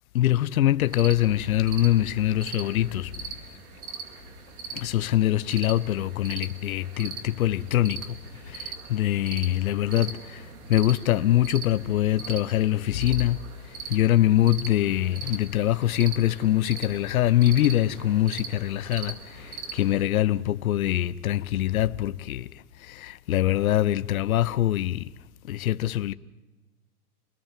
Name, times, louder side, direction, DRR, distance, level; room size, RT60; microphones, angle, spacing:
voice 1, 0.1-3.1 4.7-13.4 13.7-25.1 25.4-26.1, left 13 dB, 65° left, 1.0 m, -24 dB
sound 1, 0.9-20.1, right 5 dB, 70° right, 4.2 m, -41 dB
30.0 x 20.5 x 7.5 m
hypercardioid pair, 135°, 45 cm